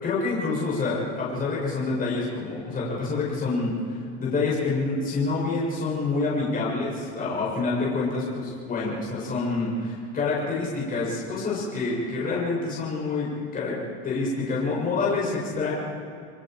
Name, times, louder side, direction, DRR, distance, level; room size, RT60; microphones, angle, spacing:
voice 1, 0.0-13.8 14.0-15.7, left 3 dB, 25° left, -5 dB, 6.8 m, -27 dB
30.0 x 20.5 x 4.6 m, 2.4 s
supercardioid pair, 130°, 33 cm